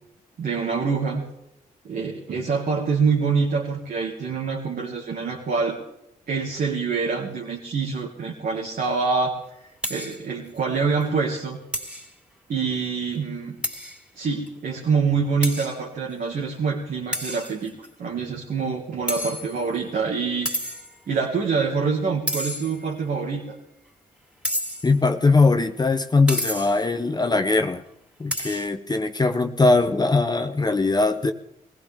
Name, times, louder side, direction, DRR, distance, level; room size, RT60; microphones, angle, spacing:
voice 1, 0.4-1.2 1.8-5.8 6.3-9.4 9.9-11.6 12.5-13.6 14.1-17.7 18.0-20.5 21.1-23.6, right 5 dB, 65° right, -2 dB, 2.3 m, -25 dB
sound 1, 9.8-10.2 10.6-10.7 11.0-11.1 11.7-12.1 13.6-14.0 14.5-14.6 15.4-15.8 17.1-17.9 19.1-19.8 20.4-21.0 22.3-23.0 24.4-25.0 26.3-26.9 28.3-28.7, equal, 5° right, 3.5 m, -30 dB
voice 2, 24.8-27.8 28.2-31.3, left 3 dB, 25° left, 7 dB, 1.0 m, -20 dB
20.5 x 16.0 x 3.7 m, 0.82 s
cardioid pair, 65°, 16 cm